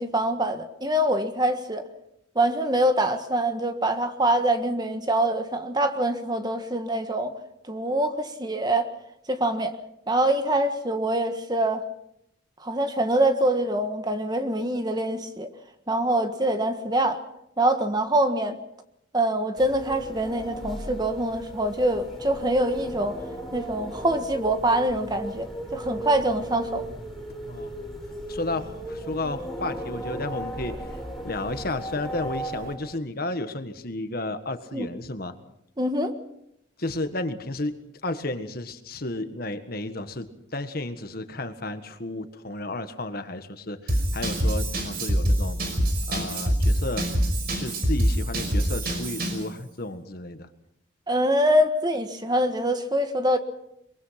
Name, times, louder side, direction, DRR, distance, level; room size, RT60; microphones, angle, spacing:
voice 1, 0.0-1.8 2.3-7.3 7.7-8.9 9.3-9.7 10.1-11.8 12.6-15.5 15.9-17.2 17.6-18.5 19.1-23.1 23.5-26.8 34.7-34.9 35.8-36.1 51.1-53.4, right 1 dB, 20° right, 1.5 m, -24 dB
sound 1, 19.6-32.8, right 1 dB, ahead, 5.0 m, -36 dB
voice 2, 27.4-27.8 28.3-30.8 31.2-35.3 36.8-37.7 38.0-45.6 46.1-47.1 47.6-50.5, left 2 dB, 50° left, 1.6 m, -32 dB
Drum kit / Drum, 43.9-49.5, equal, 50° right, 5.5 m, -25 dB
23.5 x 23.5 x 5.9 m
head